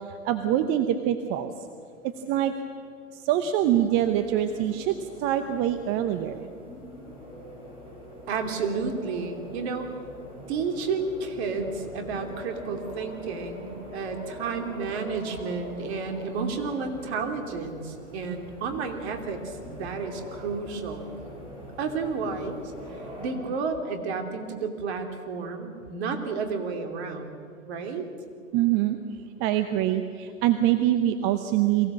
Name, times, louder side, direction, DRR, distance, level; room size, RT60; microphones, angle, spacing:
voice 1, 0.1-1.5 2.3-2.5 3.1-6.5 28.5-29.0 29.4-31.9, right 11 dB, 30° right, 9 dB, 0.9 m, -24 dB
sound 1, 3.6-23.3, left 1 dB, 10° right, 6.4 m, -43 dB
voice 2, 8.3-9.9 10.5-21.1 21.8-22.6 23.2-27.4 27.7-28.1, right 4 dB, 50° right, 5 dB, 2.9 m, -31 dB
23.0 x 16.0 x 7.6 m, 2.3 s
hypercardioid pair, 120°, 41 cm